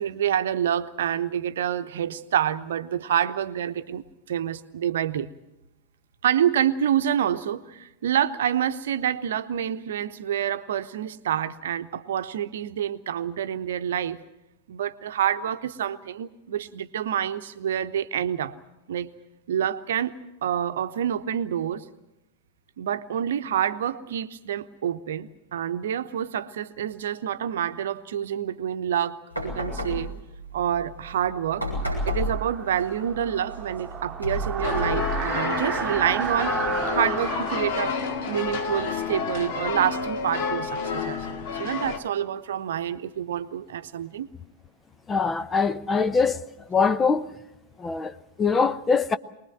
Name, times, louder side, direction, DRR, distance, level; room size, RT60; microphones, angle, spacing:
voice 1, 0.0-5.3 6.2-14.2 14.7-18.5 18.9-19.1 19.5-20.1 20.4-21.8 22.8-30.1 30.5-31.6 32.1-36.5 36.9-38.0 38.3-44.3, right 9 dB, 60° right, 0.9 m, -27 dB
sound 1, 29.3-36.8, equal, 85° left, 7.7 m, -33 dB
sound 2, 31.4-40.1, right 6 dB, 20° right, 1.4 m, -34 dB
sound 3, 34.6-42.0, left 5 dB, 50° left, 2.1 m, -29 dB
voice 2, 45.1-46.4 46.7-47.3 47.8-49.2, left 5 dB, 20° left, 0.7 m, -23 dB
23.5 x 20.0 x 7.6 m
figure-of-eight pair, 90°, 0 cm